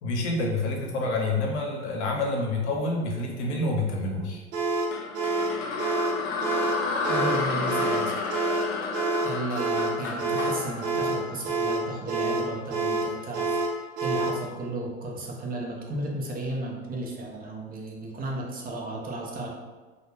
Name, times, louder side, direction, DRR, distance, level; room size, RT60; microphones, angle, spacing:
voice 1, 0.0-4.4, left 2 dB, 80° left, 0 dB, 0.7 m, -28 dB
sound 1, 4.5-14.4, right 2 dB, 75° right, 0.6 m, -28 dB
sound 2, 4.9-12.1, left 4 dB, 40° left, 0.4 m, -31 dB
voice 2, 7.1-8.2 9.2-13.5 14.0-19.5, right 1 dB, 25° right, -2 dB, 0.6 m, -34 dB
2.2 x 2.1 x 3.1 m, 1.3 s
hypercardioid pair, 85°, 34 cm